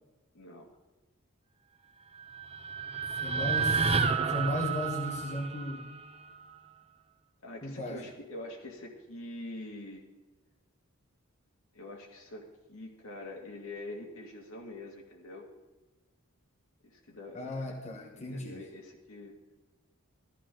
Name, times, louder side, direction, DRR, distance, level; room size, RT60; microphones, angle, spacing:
voice 1, 0.3-0.7 3.3-3.7 7.4-10.0 11.7-15.5 16.8-17.7 18.1-19.3, left 2 dB, 70° left, 0 dB, 2.4 m, -45 dB
sound 1, 2.1-6.4, right 5 dB, 25° right, 0.5 m, -31 dB
voice 2, 3.2-3.8 4.3-5.9 7.6-8.0 17.3-18.6, left 1 dB, 30° left, -1 dB, 1.4 m, -35 dB
14.0 x 13.5 x 3.9 m, 1.1 s
head